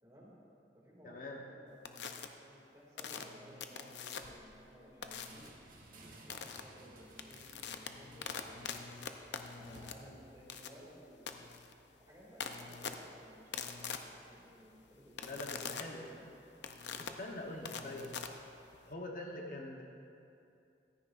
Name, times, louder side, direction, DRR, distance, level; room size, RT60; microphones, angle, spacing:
voice 1, 0.0-0.4 0.7-11.4 12.0-16.3 17.5-17.9, equal, 20° right, -5 dB, 2.4 m, -58 dB
voice 2, 1.0-1.4 15.2-16.0 17.0-18.1 18.8-19.8, left 1 dB, 45° left, 0 dB, 1.0 m, -44 dB
sound 1, 1.9-2.3 3.0-4.5 5.0-5.5 6.3-6.6 7.0-18.9, left 6 dB, 75° left, 0.6 m, -44 dB
sound 2, 5.2-10.1, right 2 dB, 50° right, 1.5 m, -58 dB
15.5 x 13.5 x 2.5 m, 2.6 s
head